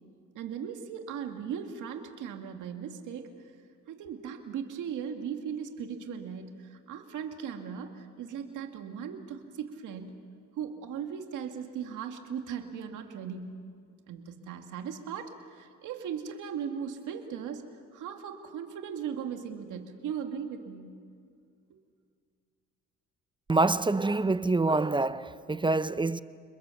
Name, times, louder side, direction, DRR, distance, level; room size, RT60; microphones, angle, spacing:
voice 1, 0.3-3.3 3.9-10.2 10.6-13.6 14.1-17.6 17.9-21.0, right 7 dB, 85° right, 2.0 m, -38 dB
voice 2, 23.5-26.2, right 3 dB, 15° right, 0.6 m, -26 dB
29.0 x 21.5 x 7.1 m
cardioid pair, 90°, 30 cm